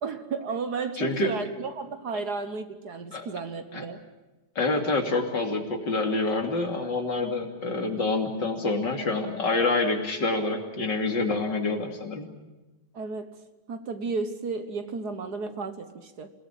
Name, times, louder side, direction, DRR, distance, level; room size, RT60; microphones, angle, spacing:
voice 1, 0.0-4.0 12.9-13.4 13.7-16.3, right 4 dB, 55° right, 9 dB, 1.7 m, -33 dB
voice 2, 1.0-1.3 3.1-3.2 3.7-3.8 4.6-12.3, left 3 dB, 60° left, 2 dB, 3.4 m, -27 dB
27.5 x 18.5 x 8.4 m, 1.1 s
omnidirectional pair, 2.2 m